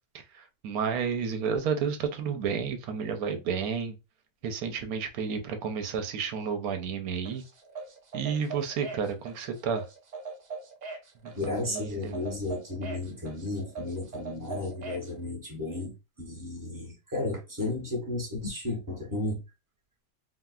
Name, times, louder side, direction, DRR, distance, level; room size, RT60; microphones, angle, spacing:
voice 1, 0.6-4.0 4.4-7.4 8.1-9.8 11.2-12.2, right 6 dB, 80° right, 1.1 m, -31 dB
sound 1, 7.3-15.1, right 4 dB, 60° right, 0.4 m, -41 dB
voice 2, 11.3-19.4, left 2 dB, 15° right, 0.9 m, -33 dB
3.9 x 2.1 x 2.3 m
omnidirectional pair, 1.6 m